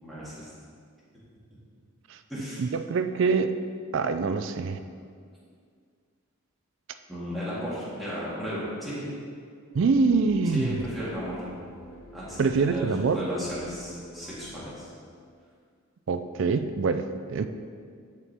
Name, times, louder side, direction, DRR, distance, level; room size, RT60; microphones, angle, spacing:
voice 1, 0.0-0.5 2.3-2.6 7.1-9.1 10.4-11.4 12.1-12.9 13.1-14.9, equal, ahead, -10 dB, 1.9 m, -34 dB
voice 2, 2.6-3.5 3.9-4.8 9.7-10.7 12.4-13.2 16.1-17.0 17.3-17.5, right 4 dB, 55° right, 9 dB, 0.3 m, -24 dB
sound 1, 9.7-14.9, left 1 dB, 75° left, 0.9 m, -48 dB
11.0 x 4.4 x 3.5 m, 2.1 s
head